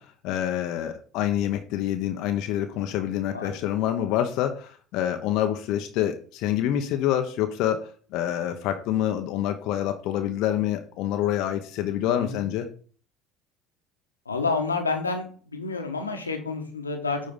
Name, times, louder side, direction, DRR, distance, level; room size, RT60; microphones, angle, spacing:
voice 1, 0.2-12.7, left 11 dB, 60° left, 7 dB, 0.8 m, -27 dB
voice 2, 12.1-12.4 14.3-17.2, left 4 dB, 90° left, 3 dB, 1.2 m, -29 dB
9.5 x 3.8 x 5.2 m, 0.43 s
figure-of-eight pair, 65°, 0 cm